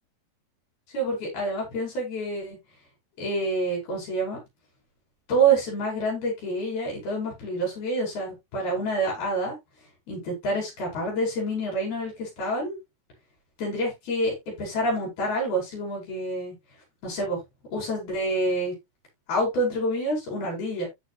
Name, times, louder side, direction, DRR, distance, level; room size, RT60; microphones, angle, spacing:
voice 1, 0.9-2.6 3.2-4.4 5.3-9.6 10.1-12.8 13.6-16.5 17.0-17.4 17.7-18.7 19.3-20.9, right 2 dB, 90° left, 7.4 m, -27 dB
14.0 x 5.1 x 2.6 m
omnidirectional pair, 4.2 m